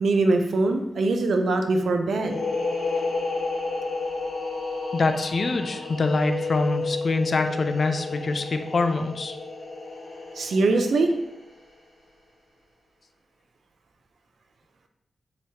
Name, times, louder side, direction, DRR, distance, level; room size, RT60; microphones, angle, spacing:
voice 1, 0.0-2.4 10.4-11.1, right 2 dB, 75° right, 5 dB, 0.4 m, -22 dB
sound 1, 2.1-11.6, left 3 dB, 65° left, 1.1 m, -31 dB
voice 2, 4.9-9.4, left 3 dB, 50° left, 7 dB, 0.3 m, -25 dB
4.7 x 2.9 x 2.8 m, 0.81 s
wide cardioid pair, 115°, 0 cm